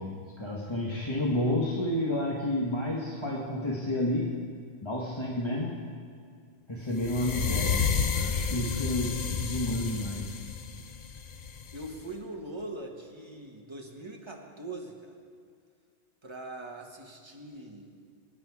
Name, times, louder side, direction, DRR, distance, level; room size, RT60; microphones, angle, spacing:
voice 1, 0.0-4.3 4.8-5.8 6.7-10.4, left 1 dB, 25° left, -3 dB, 1.3 m, -31 dB
sound 1, 7.0-12.0, left 6 dB, 45° left, 0.7 m, -31 dB
voice 2, 11.7-15.1 16.2-17.9, right 2 dB, 25° right, 1 dB, 1.5 m, -42 dB
23.0 x 9.8 x 4.8 m, 2.1 s
omnidirectional pair, 1.1 m